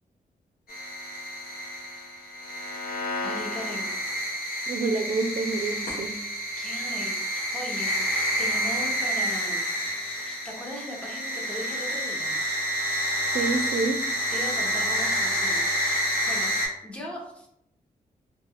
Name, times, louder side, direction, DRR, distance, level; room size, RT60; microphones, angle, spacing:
sound 1, 0.7-16.7, equal, 75° left, 0.9 m, -29 dB
voice 1, 3.2-3.9 6.0-9.7 10.2-12.4 14.3-16.6 16.8-17.5, left 1 dB, 5° left, -3 dB, 0.8 m, -39 dB
voice 2, 4.7-6.2 13.3-14.1, right 3 dB, 55° right, 7 dB, 0.4 m, -27 dB
2.4 x 2.3 x 2.8 m, 0.74 s
cardioid pair, 80°, 16 cm